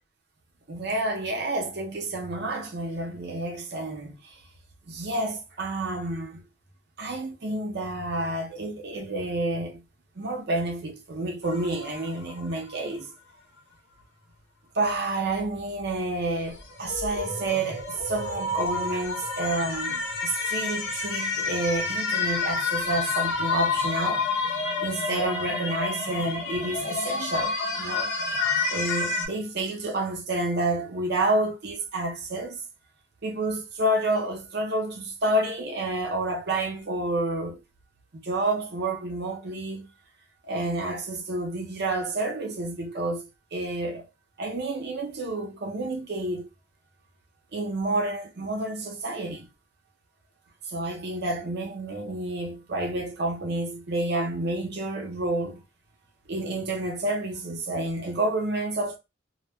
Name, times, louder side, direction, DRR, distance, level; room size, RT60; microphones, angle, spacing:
voice 1, 0.7-4.2 4.9-6.4 7.0-9.8 10.2-13.1 14.7-24.2 24.8-28.1 28.7-32.6 33.2-37.6 38.2-39.9 40.4-44.1 44.4-46.5 47.5-49.5 50.7-55.6 56.3-59.0, right 2 dB, 55° right, 0.7 m, -29 dB
sound 1, 11.4-12.5 16.5-29.3, left 4 dB, 60° left, 0.9 m, -29 dB
2.2 x 2.0 x 3.3 m
head